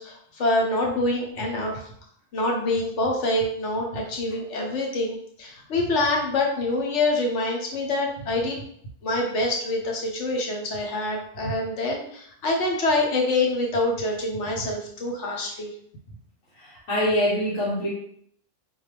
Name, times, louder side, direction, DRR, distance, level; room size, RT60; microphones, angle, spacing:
voice 1, 0.0-1.9 2.3-8.6 9.0-15.7, left 2 dB, 65° left, 0 dB, 1.1 m, -26 dB
voice 2, 16.6-17.9, equal, 90° left, -9 dB, 1.6 m, -24 dB
4.0 x 2.6 x 3.3 m, 0.67 s
omnidirectional pair, 1.3 m